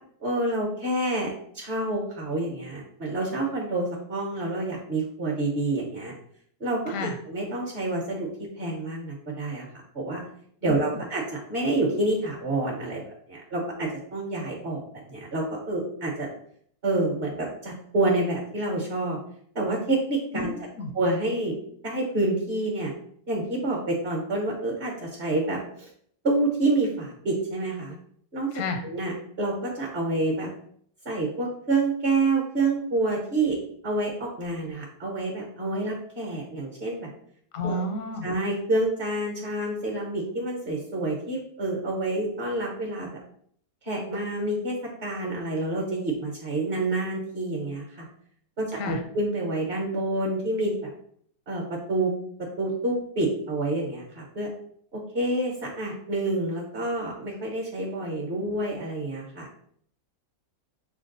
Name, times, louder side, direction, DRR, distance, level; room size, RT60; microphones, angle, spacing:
voice 1, 0.2-6.1 6.6-9.6 9.9-10.2 10.6-13.0 13.3-14.8 15.1-16.3 16.8-19.2 19.5-20.5 20.9-21.5 21.8-22.9 23.3-25.9 26.2-27.9 28.3-29.1 29.4-30.5 31.0-33.6 33.8-37.1 37.6-37.8 38.2-43.1 43.8-48.1 48.6-50.9 51.5-52.1 52.6-54.5 54.9-59.5, right 2 dB, 40° right, -2 dB, 1.1 m, -28 dB
voice 2, 20.3-20.9 28.5-28.8 37.5-38.3 48.8-49.0, left 2 dB, 65° left, 6 dB, 0.8 m, -31 dB
5.8 x 2.3 x 3.8 m, 0.64 s
omnidirectional pair, 1.9 m